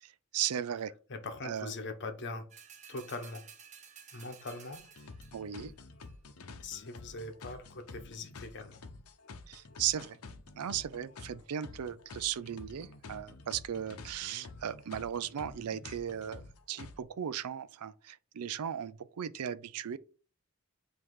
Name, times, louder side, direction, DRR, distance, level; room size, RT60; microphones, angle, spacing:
voice 1, 0.0-0.9 1.4-1.7 5.3-5.7 9.5-10.2 10.6-20.0, right 9 dB, 90° right, 0.4 m, -37 dB
voice 2, 1.1-2.5 2.9-3.5 4.1-4.8 6.6-8.8, left 3 dB, 55° left, 1.0 m, -41 dB
sound 1, 2.5-5.6 6.0-6.1, right 7 dB, 35° right, 0.8 m, -54 dB
sound 2, 4.7-17.0, left 3 dB, 75° left, 0.8 m, -49 dB
7.7 x 2.8 x 4.7 m
head